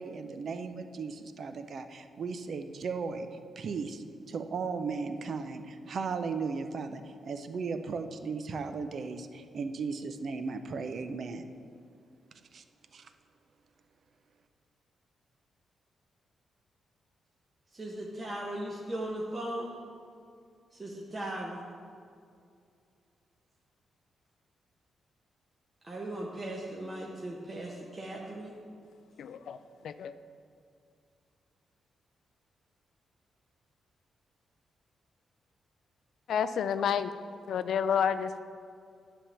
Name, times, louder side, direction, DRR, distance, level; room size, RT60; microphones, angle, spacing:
voice 1, 0.0-3.3 3.6-11.5 12.5-12.6 12.9-13.1, right 4 dB, 60° right, 8 dB, 0.5 m, -36 dB
voice 2, 17.7-19.8 20.7-21.6 25.8-28.5, right 1 dB, 25° right, -4 dB, 1.1 m, -38 dB
voice 3, 29.2-29.6 29.8-30.2 36.3-37.1 37.5-38.4, left 8 dB, 75° left, 12 dB, 0.3 m, -29 dB
10.0 x 3.5 x 7.1 m, 2.4 s
cardioid pair, 90°, 0 cm